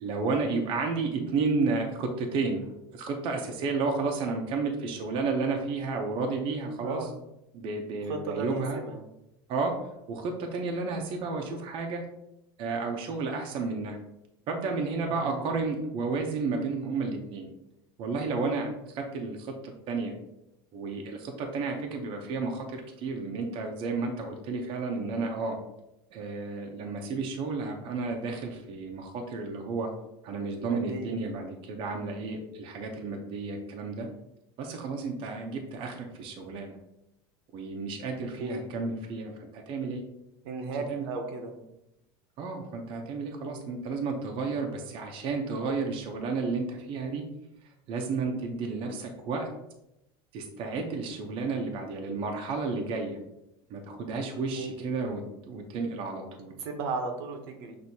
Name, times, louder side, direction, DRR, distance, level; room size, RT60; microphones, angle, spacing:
voice 1, 0.0-2.7 2.9-7.1 7.5-8.8 9.5-9.7 10.1-12.0 12.6-14.0 14.5-17.5 18.0-19.5 19.9-20.1 20.7-25.6 26.1-29.9 30.2-34.1 34.6-36.7 37.5-40.0 40.9-41.0 42.4-47.2 47.9-49.5 50.3-53.2 53.7-56.5, right 4 dB, 45° right, 2 dB, 0.6 m, -32 dB
voice 2, 6.8-7.1 8.1-9.0 15.0-15.4 30.6-31.2 38.4-38.7 40.4-41.5 54.5-54.8 56.6-57.8, right 4 dB, 80° right, 4 dB, 0.8 m, -35 dB
6.0 x 2.7 x 2.7 m, 0.87 s
cardioid pair, 150°, 13 cm